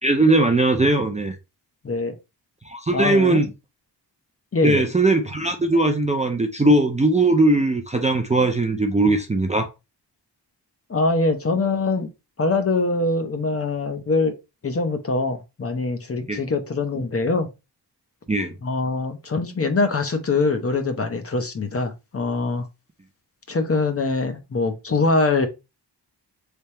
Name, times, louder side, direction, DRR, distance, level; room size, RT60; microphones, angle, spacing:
voice 1, 0.0-1.4 2.7-3.5 4.6-9.7 16.3-16.4 18.3-18.5, right 2 dB, 20° right, 0.4 m, -19 dB
voice 2, 2.9-3.4 4.5-4.8 10.9-12.1 12.4-14.3 14.6-17.5 18.6-22.6 23.5-25.5, left 3 dB, 35° left, 0.6 m, -23 dB
3.4 x 2.8 x 4.1 m
wide cardioid pair, 160°, 41 cm